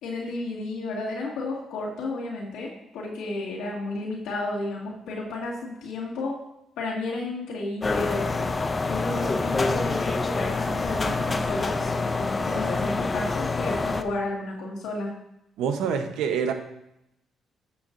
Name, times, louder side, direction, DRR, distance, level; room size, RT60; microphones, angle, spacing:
voice 1, 0.0-6.4 6.8-8.5 8.8-15.1, left 2 dB, 90° left, -5 dB, 2.0 m, -32 dB
sound 1, 7.8-14.0, left 3 dB, 30° left, 0.6 m, -26 dB
voice 2, 15.6-16.5, right 7 dB, 90° right, 6 dB, 0.9 m, -26 dB
11.0 x 6.8 x 2.6 m, 0.83 s
cardioid pair, 90°, 0 cm